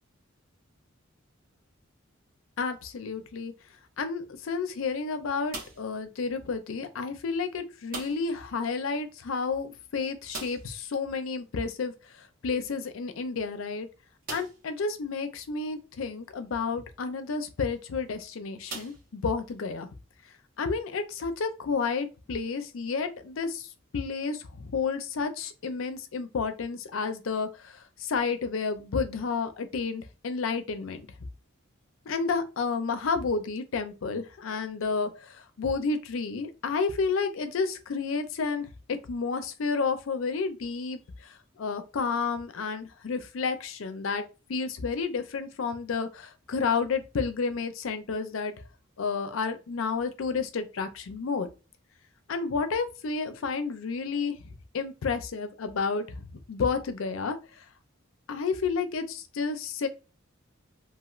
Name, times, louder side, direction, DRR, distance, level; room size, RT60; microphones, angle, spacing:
voice 1, 2.6-3.5 4.0-11.9 12.4-13.9 14.3-19.9 20.6-23.7 23.9-31.0 32.1-44.2 44.5-48.5 49.0-51.5 52.3-54.4 54.7-57.4 58.3-59.9, left 4 dB, 80° left, 0.5 m, -31 dB
sound 1, 5.5-6.0 7.9-8.4 8.7-8.8 9.1-9.2 10.3-10.8 12.6-12.7 13.3-13.4 14.2-14.7 15.5-15.6 17.6-17.8 18.7-19.6, right 3 dB, 45° right, 1.1 m, -41 dB
3.0 x 2.7 x 2.4 m
head